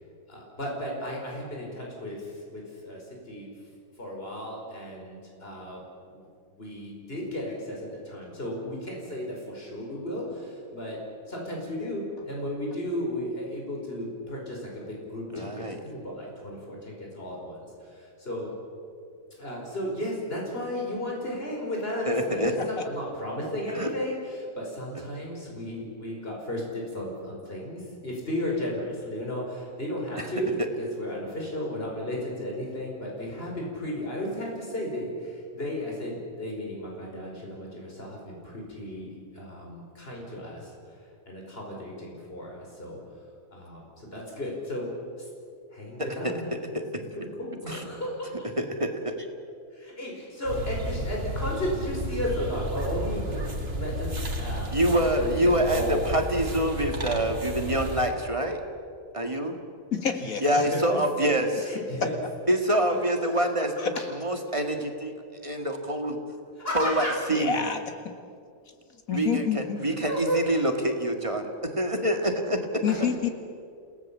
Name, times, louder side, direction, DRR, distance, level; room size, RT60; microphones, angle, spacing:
voice 1, 0.3-3.0 3.3-3.5 4.0-5.8 6.1-6.2 6.5-11.0 11.3-18.5 19.4-40.7 41.3-43.0 43.5-44.9 45.2-45.3 45.7-48.3 49.7-54.7 55.2-55.3 55.7-56.1 60.5-60.6 60.9-61.0 61.6-62.1 63.3-63.4 66.6-67.2 70.1-70.4 72.9-73.0, equal, 45° left, -2 dB, 5.4 m, -34 dB
voice 2, 15.3-15.8 22.1-22.5 23.8-23.9 30.2-30.3 46.0-46.3 46.7-46.8 47.7-47.9 48.6-49.1 54.7-58.6 59.1-59.6 60.4-61.8 62.5-63.7 64.2-65.1 65.4-66.2 66.7-67.6 69.1-72.6, right 1 dB, 25° right, 4 dB, 2.0 m, -26 dB
sound 1, 50.4-58.1, right 1 dB, 45° right, 2.5 m, -32 dB
voice 3, 59.9-60.7 62.0-62.1 63.8-63.9 67.3-67.8 69.1-69.8 72.8-73.3, left 7 dB, 90° left, 6 dB, 2.3 m, -28 dB
28.5 x 18.0 x 7.5 m, 2.4 s
omnidirectional pair, 1.4 m